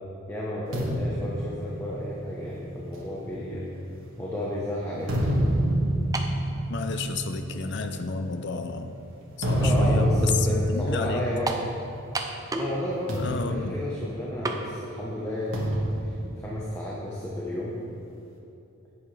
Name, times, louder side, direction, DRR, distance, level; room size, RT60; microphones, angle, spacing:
voice 1, 0.3-3.6 4.2-5.2 9.5-11.5 12.5-16.2 16.4-17.8, left 1 dB, 10° left, -5 dB, 0.9 m, -32 dB
sound 1, 0.7-4.3 4.8-12.3 12.5-12.7 13.1-14.7 15.5-17.3, equal, 65° right, 1.5 m, -28 dB
sound 2, 6.1-6.4 7.3-7.4 11.5-11.7 12.1-12.8 13.1-13.2 14.4-14.6, right 2 dB, 15° right, 0.5 m, -30 dB
voice 2, 6.7-8.9 9.4-11.2 13.1-13.8, left 4 dB, 55° left, 7 dB, 0.6 m, -31 dB
11.0 x 8.5 x 3.3 m, 2.7 s
head